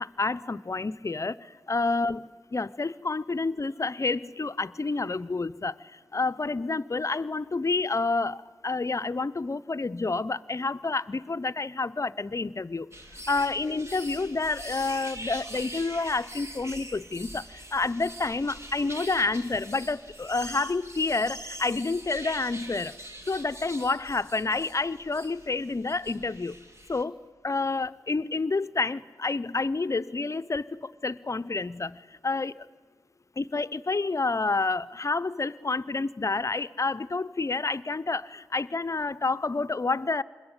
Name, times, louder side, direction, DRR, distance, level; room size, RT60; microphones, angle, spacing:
voice 1, 0.0-12.9 13.3-22.9 23.3-26.6 26.9-32.7 33.4-40.2, left 3 dB, 40° left, 14 dB, 0.7 m, -29 dB
sound 1, 12.9-27.0, right 1 dB, 35° right, 2.4 m, -43 dB
26.0 x 21.5 x 9.8 m, 1.4 s
cardioid pair, 60°, 8 cm